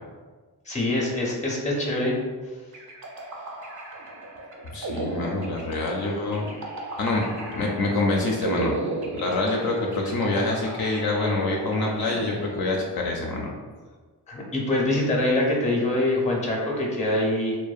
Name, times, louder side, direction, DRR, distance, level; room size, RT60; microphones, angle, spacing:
voice 1, 0.7-2.1 14.3-17.6, left 1 dB, 15° left, -2 dB, 0.6 m, -24 dB
sound 1, 2.7-13.2, right 2 dB, 45° right, 0.5 m, -35 dB
voice 2, 4.7-6.5 7.0-7.2 7.5-8.7 9.1-13.5, left 2 dB, 65° left, -1 dB, 0.5 m, -26 dB
2.5 x 2.1 x 2.4 m, 1.4 s
cardioid pair, 65°, 41 cm